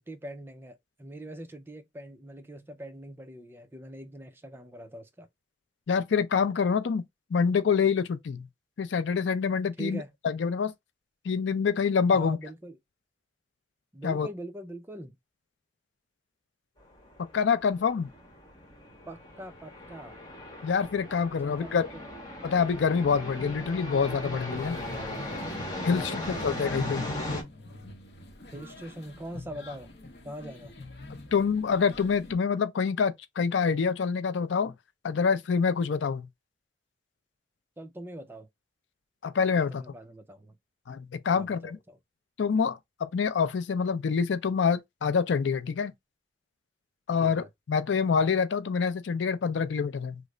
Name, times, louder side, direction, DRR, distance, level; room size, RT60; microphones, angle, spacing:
voice 1, 0.1-5.3 9.8-10.1 12.1-12.8 13.9-15.2 19.1-20.1 21.4-22.1 25.9-26.3 28.5-29.9 30.2-30.7 37.8-38.5 39.5-40.6 41.4-42.0 47.2-47.5, right 1 dB, 10° right, 0.4 m, -42 dB
voice 2, 5.9-7.0 7.3-8.5 8.8-10.7 11.2-12.4 14.0-14.3 17.3-18.1 20.6-21.8 22.4-24.8 25.8-27.1 31.3-34.7 35.0-36.3 39.2-39.8 40.9-41.8 42.4-45.9 47.1-50.2, left 6 dB, 80° left, 0.4 m, -26 dB
sound 1, 16.8-27.4, left 1 dB, 20° left, 1.1 m, -38 dB
sound 2, 24.5-32.3, left 2 dB, 60° left, 0.8 m, -46 dB
3.2 x 2.0 x 3.7 m
head